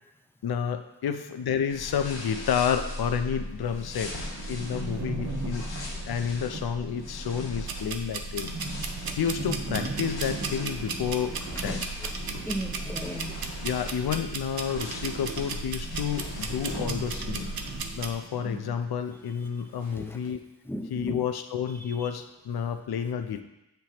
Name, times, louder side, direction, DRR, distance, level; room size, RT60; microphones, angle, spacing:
voice 1, 0.4-4.2 4.5-5.7 6.0-8.5 9.2-11.4 11.6-11.8 13.6-17.5 18.0-20.4 20.9-23.4, left 7 dB, 60° left, 8 dB, 0.5 m, -30 dB
sound 1, 1.7-17.8, left 1 dB, 80° left, 1.3 m, -39 dB
sound 2, 3.6-3.7 3.8-14.1 14.3-18.8 19.1-19.2 19.8-20.3, right 3 dB, 40° right, 1.2 m, -40 dB
sound 3, 7.6-18.1, right 5 dB, 60° right, 0.6 m, -37 dB
voice 2, 11.5-12.1 12.4-13.3 19.9-20.2 20.7-21.2 21.9-22.0, equal, 5° left, 5 dB, 0.4 m, -36 dB
7.3 x 4.6 x 2.9 m, 0.92 s
wide cardioid pair, 65°, 43 cm